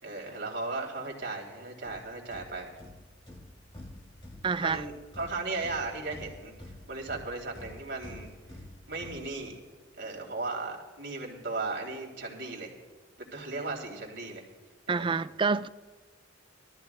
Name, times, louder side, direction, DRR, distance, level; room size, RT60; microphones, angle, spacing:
voice 1, 0.0-2.7 4.6-6.5 6.9-8.3 8.9-9.6 10.0-12.7 13.2-14.4 14.9-15.2, right 3 dB, 60° right, 3.1 m, -36 dB
sound 1, 1.8-9.8, left 1 dB, 25° left, 1.8 m, -49 dB
voice 2, 4.4-4.8 14.9-15.7, right 5 dB, 25° right, 0.3 m, -27 dB
22.0 x 13.5 x 2.3 m
head